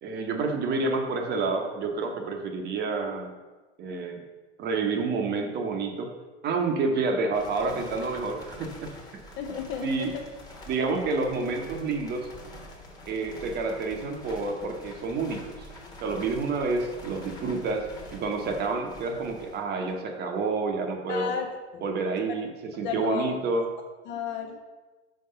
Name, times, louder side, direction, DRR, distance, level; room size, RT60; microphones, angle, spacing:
voice 1, 0.0-3.3 3.8-4.2 4.6-6.1 6.4-8.9 9.8-10.1 10.7-12.3 13.1-15.5 16.0-17.9 18.1-21.3 21.8-23.7, right 3 dB, 25° right, 4 dB, 0.9 m, -29 dB
sound 1, 7.3-20.2, left 1 dB, 10° left, 1.2 m, -46 dB
voice 2, 9.4-10.1 21.1-21.5 21.7-21.8 22.3-22.4 22.8-23.3 24.1-24.6, left 7 dB, 30° left, 5 dB, 0.6 m, -32 dB
5.7 x 4.6 x 5.6 m, 1.2 s
hypercardioid pair, 125°, 37 cm